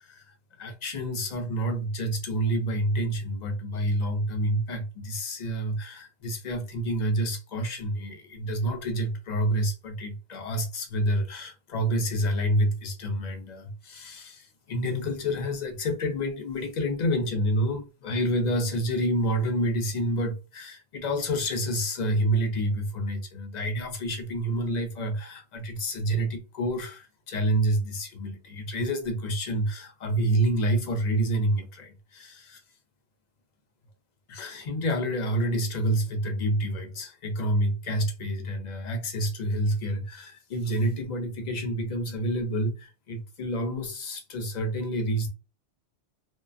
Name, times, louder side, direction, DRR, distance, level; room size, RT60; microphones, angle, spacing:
voice 1, 0.0-32.6 34.3-45.3, right 1 dB, 50° left, 0.6 m, -28 dB
2.3 x 2.2 x 2.4 m
omnidirectional pair, 1.2 m